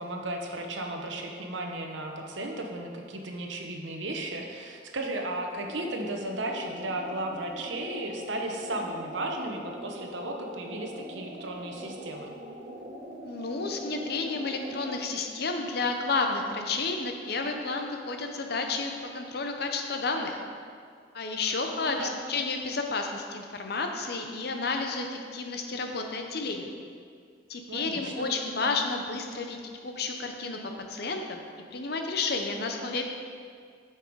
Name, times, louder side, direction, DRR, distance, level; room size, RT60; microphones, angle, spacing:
voice 1, 0.0-12.3 21.4-22.2 27.7-28.3, right 1 dB, 75° right, 2 dB, 1.0 m, -35 dB
sound 1, 5.5-15.1, right 1 dB, 45° right, 1.1 m, -42 dB
voice 2, 13.2-20.4 21.1-26.7 27.5-30.6 30.9-31.4 31.7-33.0, left 3 dB, 55° left, 4 dB, 0.8 m, -31 dB
8.5 x 5.9 x 4.7 m, 2.1 s
head